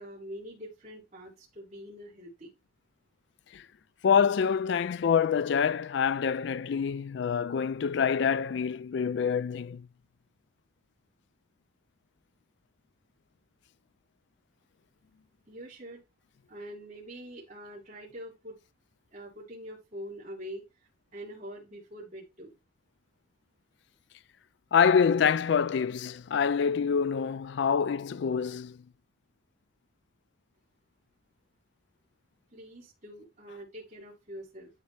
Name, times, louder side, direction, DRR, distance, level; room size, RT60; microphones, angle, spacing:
voice 1, 0.0-2.5 15.5-16.0 16.5-18.5 19.1-20.6 21.1-22.5 32.5-34.7, equal, 35° right, 4.6 m, -44 dB
voice 2, 4.0-9.9 24.7-28.8, left 6 dB, 55° left, 0.3 m, -26 dB
13.0 x 4.5 x 3.3 m
head